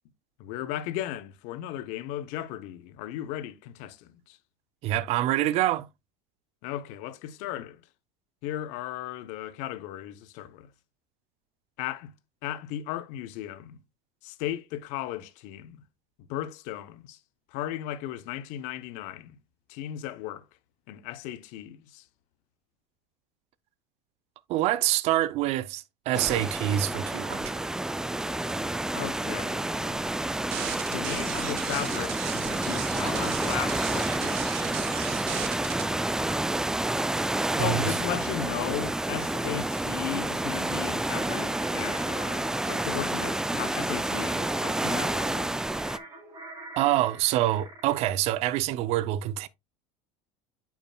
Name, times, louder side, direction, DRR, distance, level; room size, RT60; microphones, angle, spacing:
voice 1, 0.4-4.4 6.6-7.8 8.4-10.7 11.8-12.1 12.4-13.8 14.2-15.8 16.2-17.2 17.5-19.4 19.7-20.5 20.9-22.1 28.9-30.1 30.9-34.7 37.6-45.5, left 12 dB, 65° left, 0.8 m, -36 dB
voice 2, 4.8-5.9 24.5-27.5 37.6-37.8 46.8-49.5, right 14 dB, 50° right, 0.5 m, -26 dB
sound 1, 26.1-46.0, right 1 dB, 5° right, 0.3 m, -29 dB
sound 2, 30.5-35.8, right 11 dB, 80° right, 1.3 m, -36 dB
sound 3, 33.7-35.3 36.9-48.0, right 3 dB, 30° right, 4.4 m, -47 dB
8.6 x 5.8 x 2.3 m
supercardioid pair, 115°, 13 cm